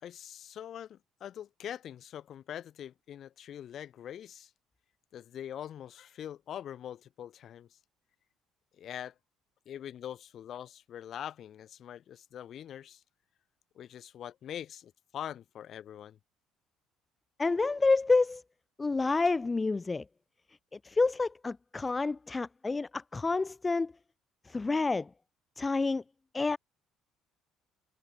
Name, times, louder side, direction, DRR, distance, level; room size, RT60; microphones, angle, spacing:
voice 1, 0.0-4.5 5.1-7.7 8.8-9.1 9.7-13.0 13.7-16.2, left 10 dB, 55° left, 4.2 m, -43 dB
voice 2, 17.4-18.4 18.8-20.0 20.8-23.9 24.5-25.1 25.6-26.0 26.3-26.6, left 3 dB, 25° left, 0.8 m, -28 dB
hypercardioid pair, 55°, 0 cm